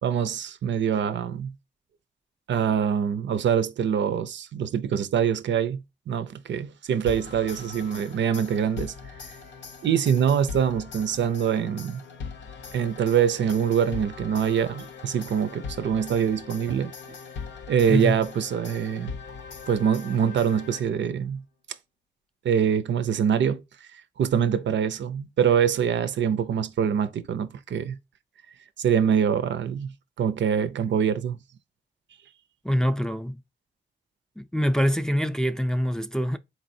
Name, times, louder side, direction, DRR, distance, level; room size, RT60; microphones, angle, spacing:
voice 1, 0.0-1.6 2.5-8.9 9.8-12.0 12.7-16.9 17.7-19.2 19.7-21.4 22.4-23.6 23.9-28.0 28.8-31.4, right 8 dB, 85° right, 0.5 m, -24 dB
sound 1, 7.1-21.2, left 5 dB, 85° left, 0.7 m, -41 dB
voice 2, 32.6-33.4 34.4-36.4, equal, 5° left, 0.3 m, -24 dB
4.1 x 3.0 x 2.6 m
wide cardioid pair, 95°, 18 cm